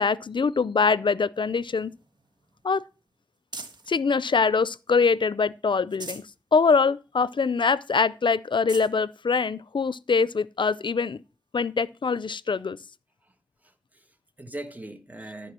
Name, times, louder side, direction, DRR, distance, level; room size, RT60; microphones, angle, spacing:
voice 1, 0.0-1.9 2.6-2.8 3.9-6.2 6.5-11.2 11.5-12.8, left 5 dB, 85° left, 0.4 m, -23 dB
sound 1, 1.3-4.0 4.5-5.3 5.7-6.4 6.8-6.9 7.3-7.4 8.0-8.1 8.5-8.9 9.8-9.9 11.6-11.7, right 3 dB, 65° right, 1.6 m, -44 dB
voice 2, 13.6-15.5, right 1 dB, 20° right, 1.7 m, -41 dB
14.0 x 4.8 x 7.5 m
wide cardioid pair, 70°, 8 cm